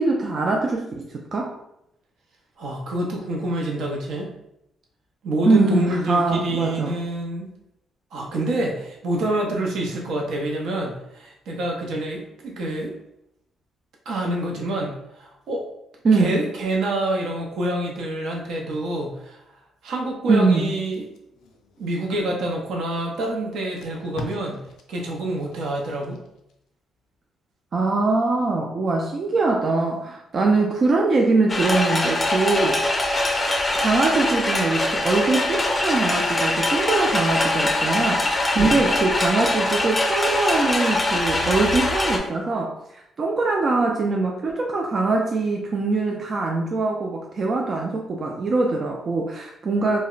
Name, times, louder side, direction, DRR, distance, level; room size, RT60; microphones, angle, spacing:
voice 1, 0.0-1.6 5.5-7.0 16.0-16.4 20.3-20.7 27.7-33.0 33.7-50.0, right 3 dB, 45° right, 0 dB, 0.3 m, -22 dB
voice 2, 2.6-4.3 5.2-7.5 8.1-12.9 14.1-15.6 16.1-19.4 19.8-21.0 21.8-24.6 24.9-26.2 38.5-38.7, right 1 dB, 75° right, 0 dB, 0.7 m, -27 dB
Packing tape duct tape, 20.8-22.4 23.1-23.2 23.6-26.5 27.0-27.2, left 1 dB, 80° left, 0.4 m, -42 dB
sound 1, 31.5-42.2, left 1 dB, 20° left, 0.5 m, -23 dB
2.1 x 2.1 x 3.7 m, 0.80 s
cardioid pair, 90°, 0 cm